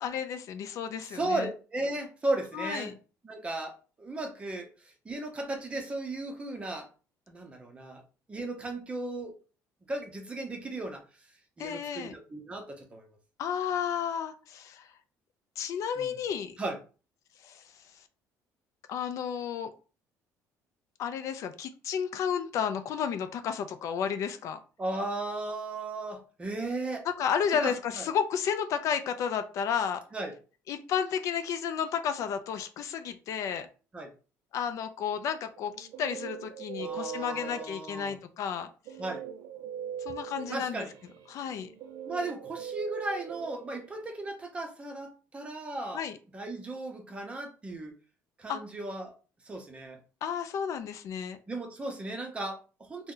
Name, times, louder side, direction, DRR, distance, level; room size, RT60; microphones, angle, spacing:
voice 1, 0.0-1.5 2.5-2.9 11.6-12.1 13.4-14.9 15.6-16.5 17.4-17.6 18.9-19.7 21.0-24.6 27.2-30.0 30.7-33.7 34.5-38.7 40.1-40.9 41.3-41.7 45.9-46.2 48.5-48.6 50.2-51.4, left 7 dB, 55° left, 10 dB, 0.3 m, -32 dB
voice 2, 1.0-2.9 3.2-6.9 7.3-8.0 8.3-9.4 9.9-11.0 11.6-13.2 16.0-16.1 16.6-16.8 24.8-27.1 27.6-28.1 30.1-30.3 33.9-34.1 36.8-38.2 39.0-39.2 40.5-40.9 42.0-46.0 46.3-47.9 48.4-49.1 49.4-50.0 51.5-53.1, right 2 dB, 20° right, 4 dB, 0.6 m, -36 dB
Guitar, 35.6-38.1 38.9-44.3, right 8 dB, 70° right, 0.3 m, -41 dB
2.7 x 2.1 x 3.7 m, 0.35 s
cardioid pair, 145°, 6 cm